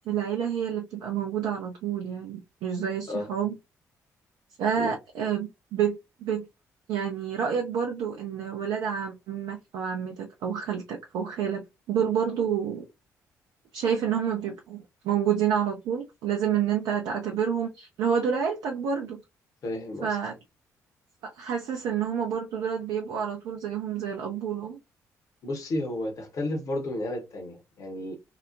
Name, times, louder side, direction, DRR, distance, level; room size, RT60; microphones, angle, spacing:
voice 1, 0.1-3.5 4.6-6.5 6.9-12.8 13.7-19.2 20.0-20.3 21.2-24.8, right 8 dB, 55° right, 0.4 m, -29 dB
voice 2, 19.6-20.2 25.4-28.2, left 1 dB, 45° left, 0.8 m, -32 dB
2.8 x 2.0 x 2.4 m
figure-of-eight pair, 45°, 8 cm